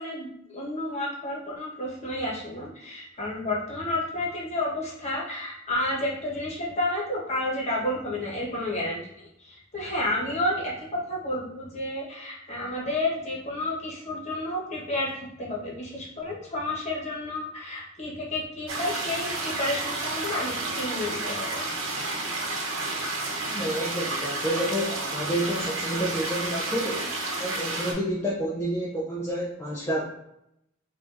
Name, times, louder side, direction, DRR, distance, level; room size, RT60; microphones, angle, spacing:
voice 1, 0.0-21.6, left 1 dB, 35° left, -4 dB, 1.1 m, -31 dB
sound 1, 18.7-27.9, right 2 dB, 70° right, 1.0 m, -31 dB
voice 2, 23.5-27.1 27.4-30.1, right 1 dB, 10° left, -5 dB, 0.4 m, -29 dB
4.9 x 2.5 x 2.5 m, 0.80 s
head